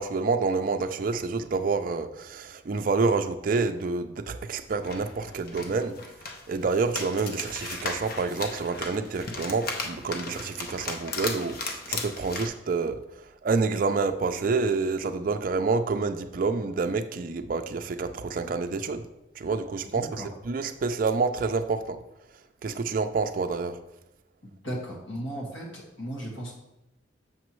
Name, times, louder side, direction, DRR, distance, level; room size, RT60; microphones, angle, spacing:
voice 1, 0.0-6.0 6.5-13.0 13.4-19.1 19.4-22.0 22.6-23.8, right 4 dB, 45° right, 8 dB, 0.4 m, -28 dB
sound 1, 4.6-12.5, left 3 dB, 50° left, 0.7 m, -36 dB
voice 2, 20.0-20.3 24.4-26.5, equal, 90° left, -2 dB, 1.8 m, -36 dB
7.1 x 5.9 x 3.1 m, 0.95 s
head